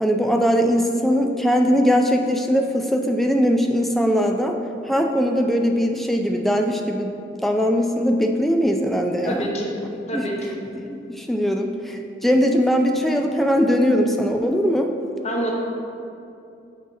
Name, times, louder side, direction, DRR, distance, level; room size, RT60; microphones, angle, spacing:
voice 1, 0.0-4.6 4.9-7.1 7.4-9.5 10.1-10.2 10.9-14.9, equal, ahead, 3 dB, 0.3 m, -20 dB
voice 2, 9.3-9.7 10.1-10.6 15.2-15.5, equal, 35° left, -1 dB, 0.8 m, -26 dB
8.1 x 2.8 x 4.7 m, 2.6 s
head